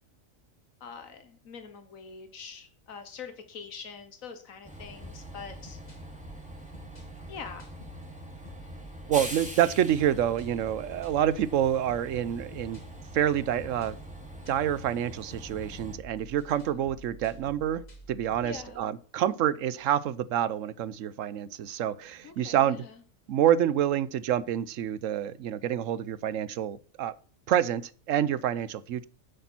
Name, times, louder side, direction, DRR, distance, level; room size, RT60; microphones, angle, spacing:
voice 1, 0.8-5.8 7.3-7.7 18.4-18.9 22.2-23.0, left 6 dB, 85° left, 1.6 m, -44 dB
Train, 4.6-16.0, equal, 5° right, 2.5 m, -44 dB
sound 1, 5.0-18.7, right 1 dB, 30° left, 2.4 m, -49 dB
voice 2, 9.1-12.8 13.1-14.0 14.5-22.8 23.3-27.1 27.5-29.0, right 10 dB, 75° right, 1.0 m, -27 dB
10.5 x 8.3 x 4.4 m
omnidirectional pair, 1.4 m